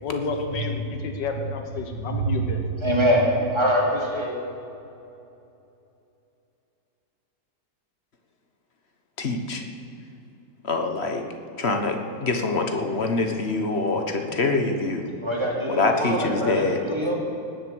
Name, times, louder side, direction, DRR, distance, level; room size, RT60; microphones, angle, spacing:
voice 1, 0.0-2.6, left 4 dB, 90° left, 4 dB, 1.8 m, -30 dB
voice 2, 2.8-4.3 15.2-17.2, equal, 15° right, -3 dB, 2.8 m, -24 dB
voice 3, 9.2-9.6 10.6-11.2 11.6-15.1 15.7-16.8, left 3 dB, 40° left, 5 dB, 1.3 m, -25 dB
18.5 x 7.8 x 7.8 m, 2.8 s
omnidirectional pair, 1.8 m